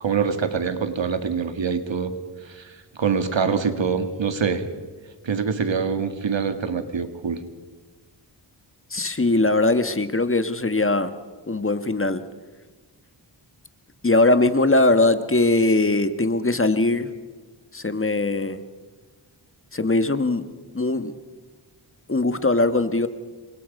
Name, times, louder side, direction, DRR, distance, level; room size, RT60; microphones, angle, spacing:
voice 1, 0.0-2.2 2.5-4.6 5.2-7.4, right 6 dB, 75° right, 9 dB, 2.0 m, -25 dB
voice 2, 8.9-11.1 11.5-12.2 14.0-17.1 17.7-18.6 19.7-20.5 20.7-21.1 22.1-23.1, left 2 dB, 30° left, 11 dB, 1.3 m, -20 dB
28.0 x 23.5 x 5.3 m, 1.3 s
wide cardioid pair, 75°, 45 cm